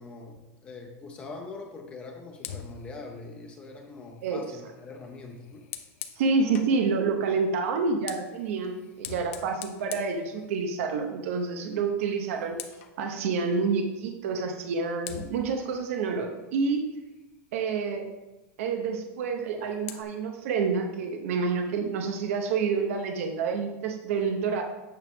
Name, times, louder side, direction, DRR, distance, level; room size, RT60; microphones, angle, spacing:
voice 1, 0.0-5.6, left 3 dB, 15° left, 2 dB, 0.5 m, -43 dB
Fire, 2.4-6.8 7.7-11.0 11.3-11.6 11.9-13.0 14.4-14.5 15.0-17.4 19.2-20.0, left 9 dB, 60° left, 0.8 m, -45 dB
voice 2, 6.2-12.6 13.0-16.8 17.5-18.1 18.6-24.6, right 5 dB, 65° right, 4 dB, 0.9 m, -28 dB
8.7 x 6.1 x 3.6 m, 1.1 s
supercardioid pair, 180°, 8 cm